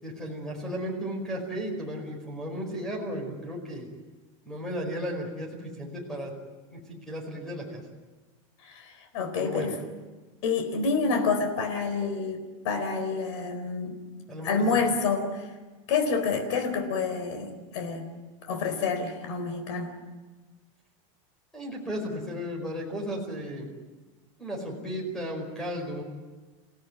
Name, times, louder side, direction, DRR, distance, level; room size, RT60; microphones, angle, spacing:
voice 1, 0.0-3.9 4.4-6.3 6.7-7.8 9.4-9.8 14.3-14.9 21.5-23.7 24.4-26.0, equal, 5° left, 1 dB, 5.0 m, -34 dB
voice 2, 8.6-9.7 10.4-14.0 14.4-15.5 15.9-18.0 18.4-19.9, left 4 dB, 60° left, 6 dB, 4.2 m, -28 dB
28.5 x 17.0 x 9.7 m, 1.3 s
supercardioid pair, 175°, 17 cm